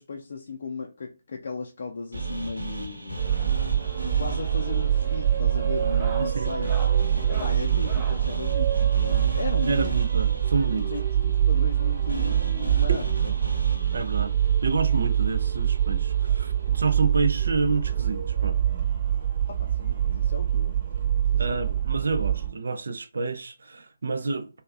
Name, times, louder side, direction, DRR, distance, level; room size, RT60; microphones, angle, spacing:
voice 1, 0.0-3.2 4.2-6.7 7.3-9.9 10.8-13.3 19.5-20.8 21.2-21.8, left 4 dB, 50° left, 0.4 m, -36 dB
sound 1, 2.1-16.3, right 2 dB, 75° right, 0.9 m, -37 dB
sound 2, 3.2-22.5, right 10 dB, 30° right, 1.1 m, -24 dB
sound 3, 4.8-5.2 5.7-8.3 9.6-11.0 12.0-12.1 12.3-12.5 12.9-13.0 14.3-14.4 15.7-15.8, right 1 dB, 15° right, 0.7 m, -43 dB
voice 2, 6.2-6.5 9.7-10.9 13.9-14.3 14.6-18.6 21.4-24.5, right 4 dB, 60° right, 0.5 m, -28 dB
3.2 x 2.1 x 2.4 m
figure-of-eight pair, 145°, 0 cm